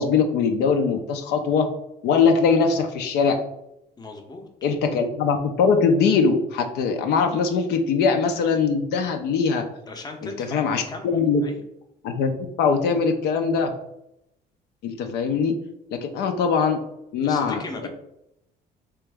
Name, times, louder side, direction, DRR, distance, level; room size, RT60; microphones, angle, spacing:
voice 1, 0.0-1.7 2.0-3.4 4.6-9.6 10.2-11.4 12.0-12.3 12.6-13.7 14.8-15.5 15.9-16.8 17.1-17.9, left 5 dB, 80° left, 5 dB, 0.5 m, -21 dB
voice 2, 4.0-4.5 9.9-11.6 17.2-17.9, left 3 dB, 25° left, 4 dB, 0.7 m, -37 dB
3.3 x 2.9 x 3.4 m, 0.81 s
cardioid pair, 110°, 17 cm